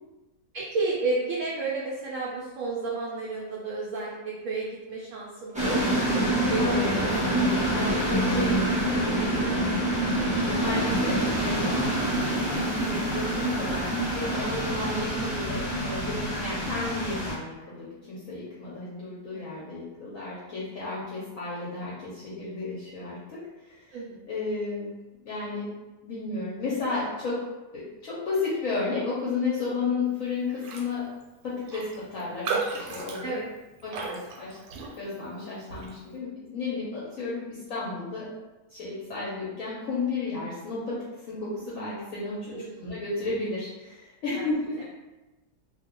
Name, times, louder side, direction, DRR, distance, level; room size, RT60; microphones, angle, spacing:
voice 1, 0.5-7.0 7.8-9.6 14.6-14.9 19.3-19.5 23.9-24.3 33.2-33.5 42.5-42.9 44.3-44.5, right 3 dB, 70° right, -5 dB, 0.8 m, -32 dB
sound 1, 5.5-17.3, right 1 dB, 10° right, 0.4 m, -26 dB
voice 2, 6.5-7.3 7.7-8.1 8.8-9.2 10.6-24.0 24.3-24.9 25.2-25.7 26.0-27.4 27.7-31.0 31.4-33.3 33.8-34.6 35.0-38.3 38.7-41.0 41.3-44.8, left 3 dB, 60° left, -8 dB, 1.0 m, -33 dB
Raindrop, 30.6-30.9 31.2-31.3 31.7-35.3 35.7-36.0, right 4 dB, 90° right, 1.2 m, -35 dB
2.7 x 2.2 x 3.6 m, 1.1 s
omnidirectional pair, 1.8 m